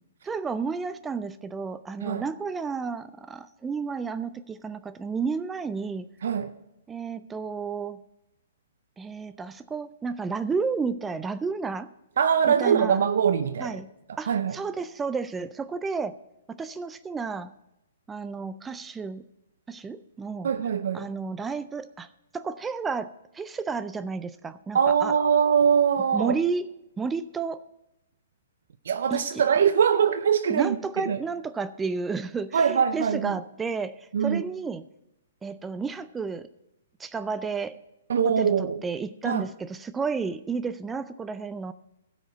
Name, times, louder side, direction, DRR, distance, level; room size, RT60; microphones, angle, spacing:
voice 1, 0.2-6.1 6.9-8.0 9.0-11.9 12.5-13.0 13.6-13.9 14.2-16.2 16.5-17.5 18.1-19.2 19.7-20.5 20.9-22.1 22.3-25.2 26.1-26.6 27.0-27.6 29.1-29.2 30.5-34.8 35.4-36.5 37.0-37.8 38.4-41.7, right 5 dB, 10° right, 0.3 m, -32 dB
voice 2, 6.2-6.5 12.2-13.8 14.3-14.6 20.4-21.1 24.7-26.4 28.8-31.2 32.5-33.4 34.1-34.4 38.1-38.8 39.2-39.4, right 7 dB, 70° right, 0.5 m, -23 dB
12.5 x 5.0 x 7.9 m
hypercardioid pair, 145°, 0 cm